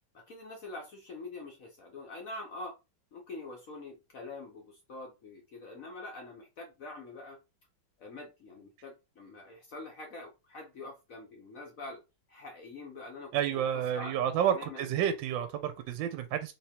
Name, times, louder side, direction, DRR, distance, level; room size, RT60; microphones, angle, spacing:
voice 1, 0.1-2.7 3.1-7.4 8.0-12.0 12.3-13.6 13.9-14.9, left 2 dB, 55° left, 0.9 m, -45 dB
voice 2, 13.3-16.5, right 9 dB, 75° right, 1.2 m, -30 dB
3.6 x 3.1 x 2.8 m
omnidirectional pair, 2.2 m